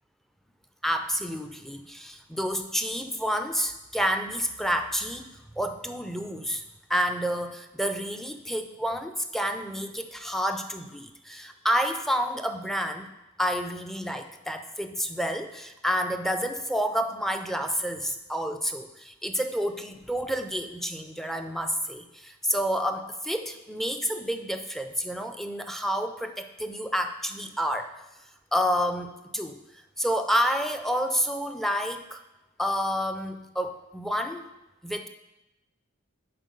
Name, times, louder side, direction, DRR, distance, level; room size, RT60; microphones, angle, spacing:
voice 1, 0.8-6.6 6.9-13.1 13.4-27.9 28.5-29.6 30.0-32.2 32.6-34.5 34.8-35.1, equal, ahead, 6 dB, 0.4 m, -29 dB
7.5 x 4.9 x 5.3 m, 0.98 s
head